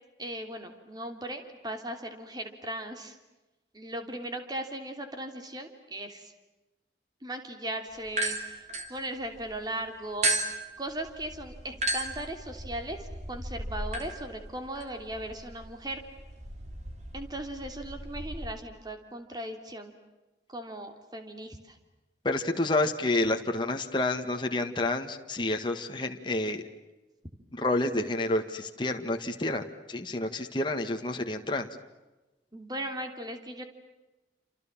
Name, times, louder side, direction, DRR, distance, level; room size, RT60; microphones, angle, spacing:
voice 1, 0.2-3.2 3.7-6.3 7.2-10.4 10.8-16.0 17.1-19.9 20.5-21.8 32.5-33.6, right 1 dB, 25° right, 6 dB, 3.1 m, -38 dB
sound 1, 8.1-9.6 10.2-18.5, right 2 dB, 40° right, 3.4 m, -35 dB
voice 2, 22.2-26.6 27.5-31.7, left 2 dB, 25° left, 4 dB, 1.8 m, -29 dB
29.5 x 27.5 x 7.4 m, 1.1 s
head